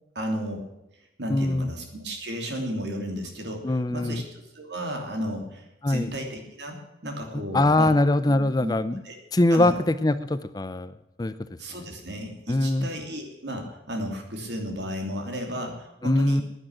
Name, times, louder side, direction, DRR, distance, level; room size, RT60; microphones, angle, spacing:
voice 1, 0.1-0.7 1.2-4.2 4.5-7.9 8.3-8.7 9.0-9.1 9.5-9.8 11.6-16.4, equal, 75° right, 3 dB, 3.0 m, -33 dB
voice 2, 1.3-1.7 3.6-4.2 5.8-6.1 7.5-9.0 9.3-10.9 11.2-11.3 12.5-12.9 16.0-16.4, left 1 dB, 20° left, 13 dB, 0.5 m, -22 dB
10.5 x 10.0 x 10.0 m, 0.89 s
head